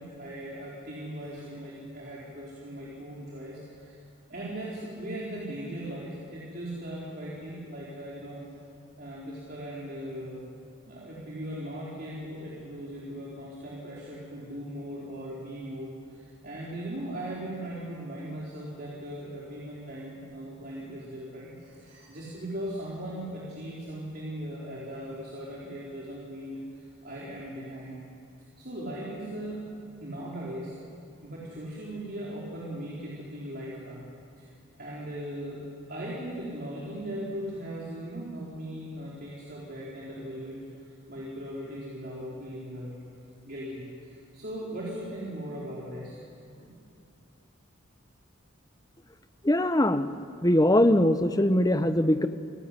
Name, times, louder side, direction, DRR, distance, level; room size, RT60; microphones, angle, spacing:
voice 1, 0.0-4.0 4.3-8.5 9.0-10.4 10.9-28.0 28.6-29.6 30.0-30.7 31.2-34.1 34.4-34.5 34.8-43.0 43.4-46.2 46.6-46.7, right 1 dB, 45° right, -5 dB, 4.3 m, -39 dB
voice 2, 49.4-50.1 50.4-52.3, left 1 dB, 15° left, 10 dB, 0.9 m, -21 dB
28.0 x 18.0 x 9.9 m, 2.4 s
head